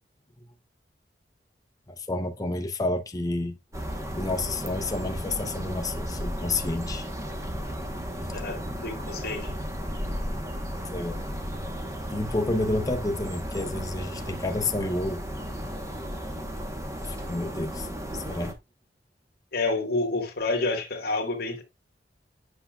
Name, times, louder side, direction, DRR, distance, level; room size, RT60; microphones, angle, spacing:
voice 1, 1.9-3.6 4.1-7.1 10.6-11.2 12.1-15.2 17.1-18.5, left 2 dB, 20° left, 0.6 m, -30 dB
sound 1, 3.7-18.5, equal, 20° right, 1.0 m, -34 dB
voice 2, 8.3-9.5 19.5-21.6, left 3 dB, 60° left, 1.5 m, -29 dB
8.2 x 5.7 x 2.3 m
head